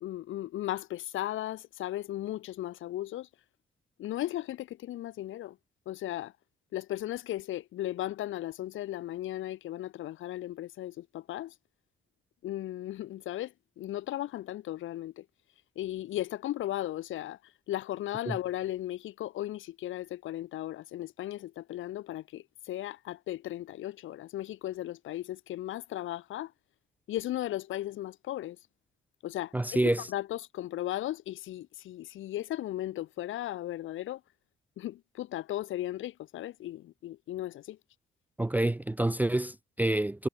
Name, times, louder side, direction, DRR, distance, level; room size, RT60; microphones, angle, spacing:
voice 1, 0.0-3.3 4.0-5.6 5.9-6.3 6.7-11.5 12.4-15.2 15.8-17.4 17.7-26.5 27.1-28.6 29.2-29.5 30.1-34.2 34.8-37.8, left 14 dB, 80° left, 2.2 m, -36 dB
voice 2, 29.5-30.0 38.4-40.3, right 1 dB, 10° right, 0.4 m, -27 dB
cardioid pair, 90°, 20 cm